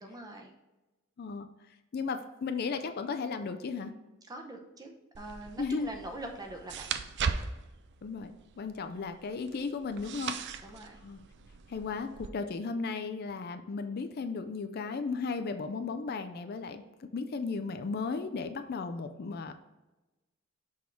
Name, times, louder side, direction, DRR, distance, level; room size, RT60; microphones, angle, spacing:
voice 1, 0.0-0.5 4.3-6.9 10.6-11.0, right 1 dB, 15° right, 3 dB, 0.7 m, -43 dB
voice 2, 1.9-3.9 5.6-5.9 8.0-8.3 8.6-10.4 11.0-11.2 11.7-19.5, left 4 dB, 45° left, 7 dB, 0.4 m, -35 dB
sound 1, 5.1-12.3, right 6 dB, 55° right, 0.4 m, -39 dB
6.1 x 3.6 x 4.4 m, 1.1 s
head